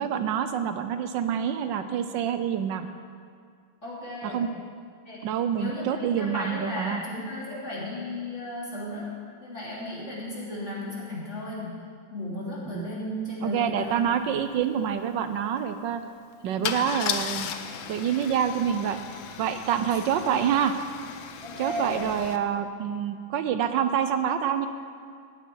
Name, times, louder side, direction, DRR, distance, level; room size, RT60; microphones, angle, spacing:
voice 1, 0.0-2.9 4.2-4.5 5.2-7.0 12.7-12.9 13.4-16.0 16.4-17.5 17.9-19.0 19.4-20.7 21.6-24.7, right 8 dB, 70° right, 9 dB, 1.2 m, -27 dB
voice 2, 3.8-4.5 5.0-5.9 6.2-9.1 9.4-11.8 12.1-14.0 16.5-16.8 21.4-22.1, left 1 dB, 35° left, -7 dB, 3.3 m, -35 dB
Car / Engine starting / Idling, 14.0-14.1 14.4-14.6 16.6-22.4, left 8 dB, 75° left, 1.5 m, -36 dB
18.0 x 9.1 x 4.6 m, 2.2 s
omnidirectional pair, 2.2 m